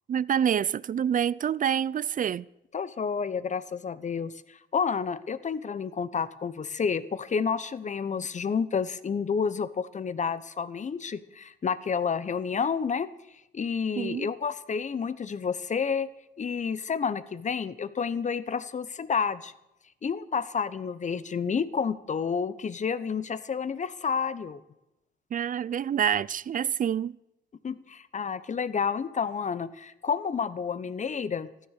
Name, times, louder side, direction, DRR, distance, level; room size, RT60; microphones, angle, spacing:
voice 1, 0.1-2.5 14.0-14.3 25.3-27.2, right 9 dB, 40° right, 0.5 m, -27 dB
voice 2, 2.7-13.1 13.5-16.1 16.4-19.5 20.0-24.6 27.6-31.5, left 6 dB, 35° left, 1.0 m, -30 dB
14.5 x 13.5 x 6.7 m
cardioid pair, 90°, 20 cm